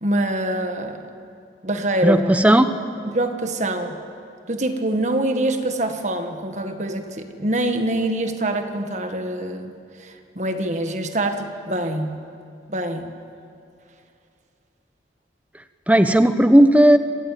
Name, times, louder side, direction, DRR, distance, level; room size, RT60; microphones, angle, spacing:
voice 1, 0.0-1.0 1.6-2.3 3.0-4.0 4.5-9.7 10.0-12.2 12.7-13.1, right 1 dB, 40° right, 6 dB, 1.7 m, -25 dB
voice 2, 2.0-2.7 15.9-17.0, right 1 dB, 10° right, 9 dB, 0.9 m, -14 dB
27.5 x 18.5 x 9.2 m, 2.6 s
head